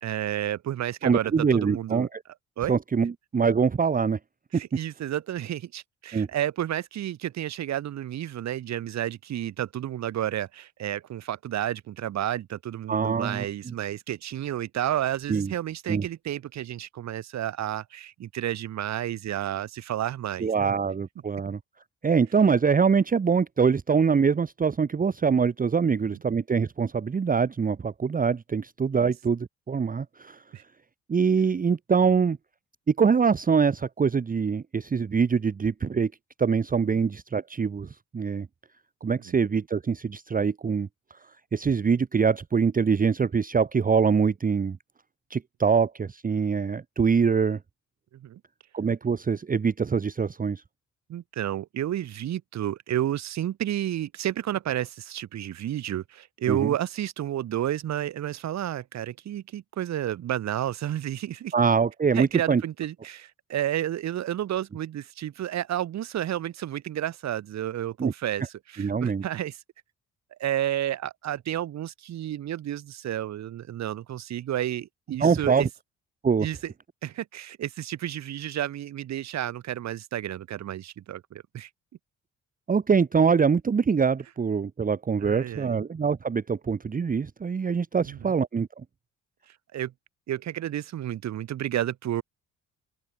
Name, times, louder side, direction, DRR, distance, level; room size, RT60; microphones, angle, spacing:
voice 1, 0.0-2.1 2.6-2.7 4.5-20.7 26.1-26.2 28.9-29.1 30.5-30.6 39.3-39.4 48.1-48.4 51.1-61.5 62.1-69.6 70.4-75.7 76.4-76.7 77.0-81.7 85.2-85.8 88.0-88.3 89.7-89.9 90.3-92.2, right 11 dB, 65° right, 1.3 m, -31 dB
voice 2, 1.0-2.2 2.7-4.2 4.5-4.6 6.1-6.3 12.9-13.5 15.3-15.5 15.9-16.0 20.4-21.6 22.0-30.4 31.1-32.4 32.9-36.1 36.4-38.5 39.0-40.9 41.5-44.8 45.3-47.6 48.7-50.6 56.5-56.7 61.5-62.6 68.0-68.1 68.8-69.2 75.2-75.7 76.2-76.5 82.7-88.7, right 6 dB, 30° right, 1.0 m, -24 dB
open air
cardioid pair, 90°, 30 cm